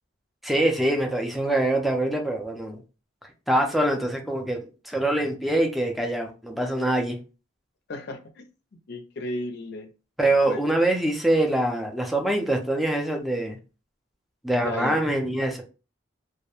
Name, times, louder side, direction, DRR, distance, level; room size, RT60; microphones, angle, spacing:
voice 1, 0.4-2.8 3.5-7.2 10.2-13.6 14.4-15.6, right 1 dB, ahead, 0.4 m, -24 dB
voice 2, 7.9-8.4 8.9-9.9 10.5-10.6 14.6-15.0, left 1 dB, 60° left, 0.4 m, -33 dB
2.3 x 2.1 x 2.9 m
head